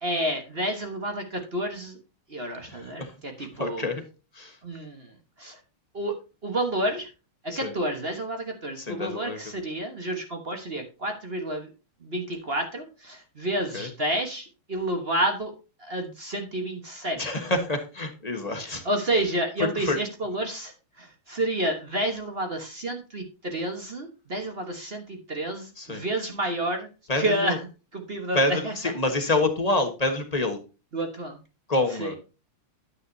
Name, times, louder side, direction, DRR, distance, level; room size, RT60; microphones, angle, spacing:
voice 1, 0.0-2.0 2.3-3.9 4.6-5.6 5.9-6.2 6.4-7.1 7.4-11.7 12.0-15.5 15.8-17.2 18.8-26.9 27.2-27.6 27.9-28.4 28.6-28.7 30.9-31.4 32.0-32.1, right 1 dB, 35° right, 4 dB, 1.2 m, -30 dB
voice 2, 2.6-4.0 4.3-4.6 7.5-7.7 8.8-9.4 13.7-13.9 17.2-18.8 19.6-20.0 25.8-26.0 27.1-27.6 28.3-30.6 31.7-32.2, left 2 dB, 25° left, 5 dB, 1.1 m, -27 dB
9.5 x 9.4 x 2.7 m, 0.30 s
omnidirectional pair, 2.4 m